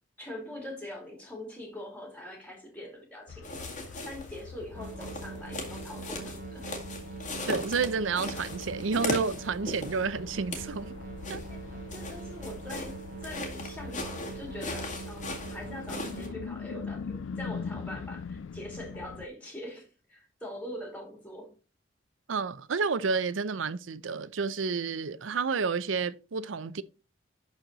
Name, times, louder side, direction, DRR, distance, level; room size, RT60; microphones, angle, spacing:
voice 1, 0.2-6.6 11.4-11.7 11.9-21.5, left 1 dB, 5° left, 2.8 m, -43 dB
sound 1, 3.3-19.3, left 5 dB, 85° left, 0.4 m, -43 dB
sound 2, 3.4-4.4 4.8-10.0 10.4-10.8 11.2-16.3, left 2 dB, 40° left, 2.0 m, -38 dB
sound 3, 4.8-16.3, right 4 dB, 50° right, 1.8 m, -43 dB
voice 2, 7.5-10.9 11.3-11.4 22.3-26.8, right 5 dB, 90° right, 0.6 m, -30 dB
11.5 x 4.3 x 4.0 m
head